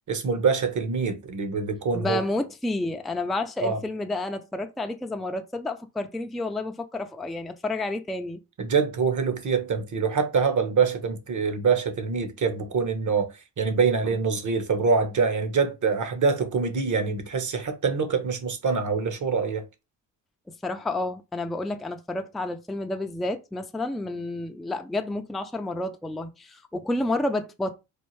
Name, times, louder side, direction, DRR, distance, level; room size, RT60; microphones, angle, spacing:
voice 1, 0.1-2.2 3.6-3.8 8.6-19.6, right 5 dB, 40° right, 1.2 m, -25 dB
voice 2, 1.9-8.4 20.6-27.7, left 2 dB, ahead, 0.5 m, -30 dB
4.4 x 2.5 x 3.2 m
supercardioid pair, 65°, 44 cm